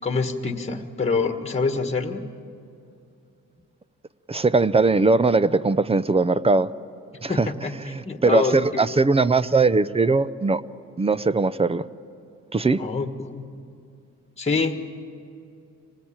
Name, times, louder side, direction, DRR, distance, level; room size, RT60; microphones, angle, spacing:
voice 1, 0.0-2.2 7.3-8.8 12.8-13.5 14.4-14.8, left 4 dB, 20° left, 6 dB, 1.6 m, -26 dB
voice 2, 4.3-6.7 7.2-7.5 7.8-10.6 11.0-11.8 12.5-12.8, right 3 dB, 20° right, 16 dB, 0.6 m, -20 dB
26.0 x 19.5 x 8.8 m, 2.6 s
cardioid pair, 90°, 30 cm